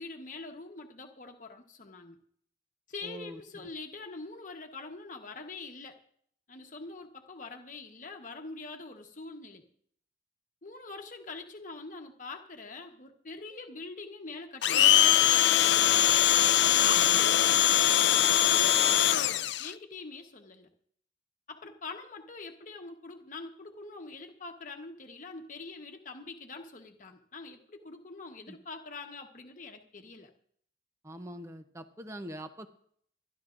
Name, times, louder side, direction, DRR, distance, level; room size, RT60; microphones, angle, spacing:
voice 1, 0.0-2.2 2.9-6.0 6.5-9.6 10.6-15.2 16.7-20.7 21.5-30.3, left 3 dB, 40° left, 4 dB, 1.1 m, -44 dB
voice 2, 3.0-3.7 16.8-17.3 28.5-28.6 31.0-32.7, equal, 15° right, 8 dB, 0.6 m, -44 dB
Domestic sounds home sounds, 14.6-19.7, left 12 dB, 65° left, 0.4 m, -22 dB
27.0 x 11.0 x 2.5 m, 0.64 s
head